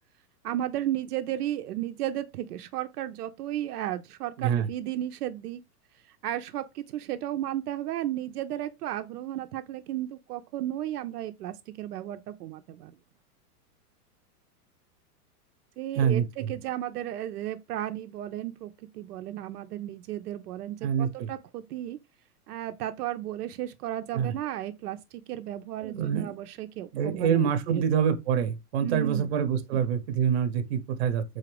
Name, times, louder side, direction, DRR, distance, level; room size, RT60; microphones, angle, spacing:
voice 1, 0.4-5.6 6.1-12.9 15.8-22.0 22.5-25.0 25.3-27.9 28.8-29.3 29.7-29.8, right 13 dB, 75° right, 0.5 m, -34 dB
voice 2, 25.8-26.3 26.9-31.2, right 8 dB, 45° right, 0.7 m, -26 dB
4.1 x 2.5 x 3.2 m
supercardioid pair, 155°, 47 cm